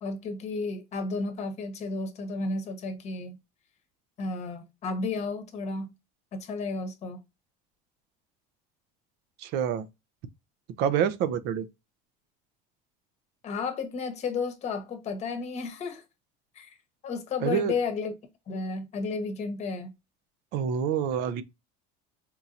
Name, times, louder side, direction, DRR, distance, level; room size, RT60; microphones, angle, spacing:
voice 1, 0.0-3.4 4.2-5.9 6.3-7.2 13.4-16.0 16.6-16.8 17.0-18.1 18.5-19.9, left 4 dB, 35° left, 0.9 m, -32 dB
voice 2, 9.4-9.9 10.8-11.7 17.4-17.7 20.5-21.4, right 8 dB, 60° right, 0.5 m, -27 dB
4.4 x 2.7 x 2.4 m
cardioid pair, 150°, 20 cm